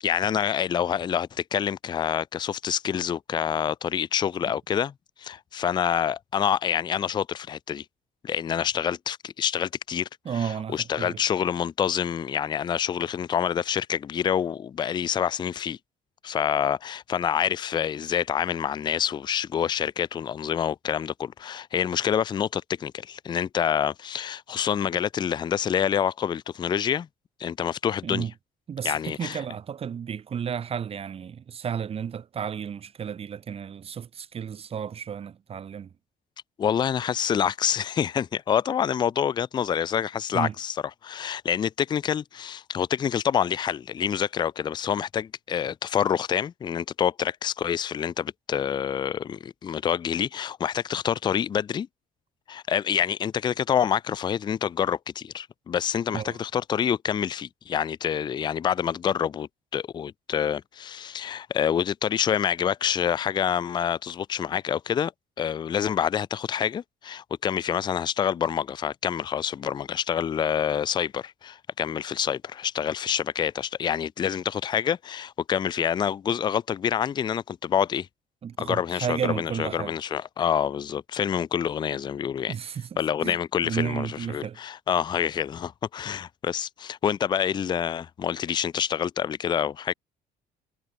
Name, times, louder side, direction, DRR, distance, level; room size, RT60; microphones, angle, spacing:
voice 1, 0.0-4.9 5.2-7.8 8.2-10.1 10.4-15.8 16.2-27.1 27.4-28.3 28.8-29.4 36.6-40.7 41.0-51.9 52.5-65.1 65.4-78.1 78.6-82.6 83.0-89.9, left 8 dB, 25° left, 0.3 m, -27 dB
voice 2, 10.2-11.2 28.0-28.3 28.7-35.9 40.3-40.5 56.1-56.4 78.4-80.0 82.5-82.9 83.2-83.3 83.6-84.6, right 7 dB, 35° right, 0.7 m, -32 dB
cardioid pair, 110°, 17 cm